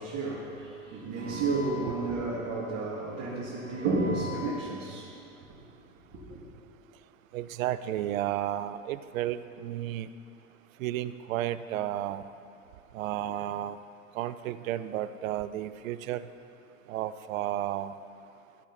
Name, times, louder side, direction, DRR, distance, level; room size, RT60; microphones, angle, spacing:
voice 1, 0.0-5.5 6.1-6.4, right 3 dB, 45° right, -6 dB, 2.1 m, -32 dB
voice 2, 7.3-10.1 10.8-12.2 12.9-13.8 14.1-16.3 16.9-17.9, right 12 dB, 75° right, 13 dB, 0.6 m, -32 dB
14.5 x 6.4 x 4.1 m, 2.6 s
hypercardioid pair, 115°, 41 cm